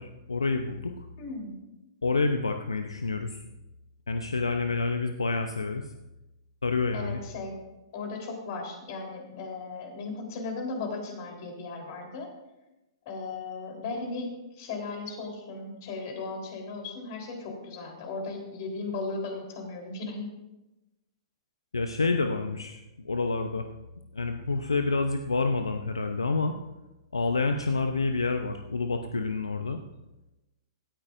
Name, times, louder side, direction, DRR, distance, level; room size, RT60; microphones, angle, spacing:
voice 1, 0.0-1.1 2.0-3.4 4.1-5.9 6.6-7.2 21.7-23.7 24.1-26.6 27.1-29.8, left 3 dB, 85° left, 6 dB, 0.8 m, -28 dB
voice 2, 1.2-1.5 6.9-7.5 7.9-12.3 13.1-20.3, left 3 dB, 50° left, 2 dB, 3.9 m, -36 dB
17.5 x 13.5 x 2.6 m, 1.0 s
figure-of-eight pair, 110°, 3 cm